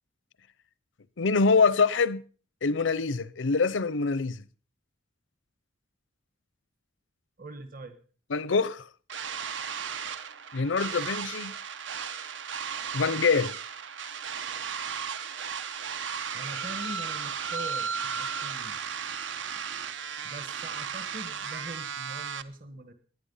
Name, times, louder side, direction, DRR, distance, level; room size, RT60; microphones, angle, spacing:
voice 1, 1.2-2.2 2.6-4.4 8.3-8.8 10.5-11.5 12.9-13.5, left 4 dB, 75° left, 0.7 m, -25 dB
voice 2, 7.4-8.0 16.3-18.8 20.2-22.9, right 1 dB, 45° right, 1.5 m, -42 dB
sound 1, 9.1-22.4, right 7 dB, 70° right, 0.9 m, -35 dB
18.5 x 10.5 x 5.6 m
head